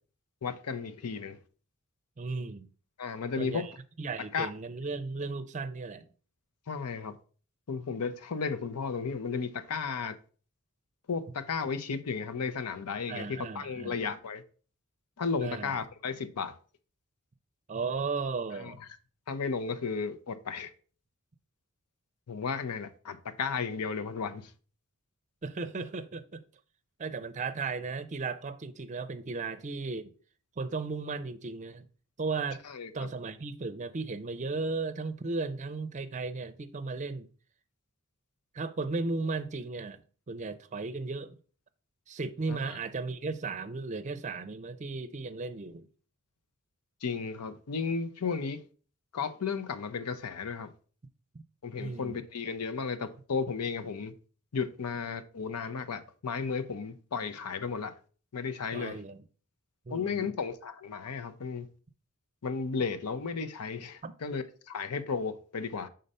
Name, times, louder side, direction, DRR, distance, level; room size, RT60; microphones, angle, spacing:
voice 1, 0.4-1.4 3.0-3.7 4.3-4.5 6.7-7.1 7.7-10.2 11.1-14.4 15.2-16.6 18.6-18.7 19.3-20.7 22.3-24.5 32.6-33.1 42.5-42.8 47.0-48.6 49.1-50.7 51.6-54.1 54.5-57.9 58.3-59.0 59.9-61.7 62.4-65.9, left 5 dB, 90° left, 0.6 m, -34 dB
voice 2, 2.2-2.7 3.4-3.7 4.0-6.1 13.1-13.9 15.4-15.8 17.7-18.8 25.4-26.4 27.0-30.1 30.6-31.9 32.2-32.6 32.9-37.3 38.5-40.0 40.3-41.4 42.1-45.9 51.8-52.2 58.7-59.2 59.9-60.3 64.0-64.1, right 3 dB, 35° right, 0.5 m, -35 dB
5.4 x 3.9 x 5.3 m
head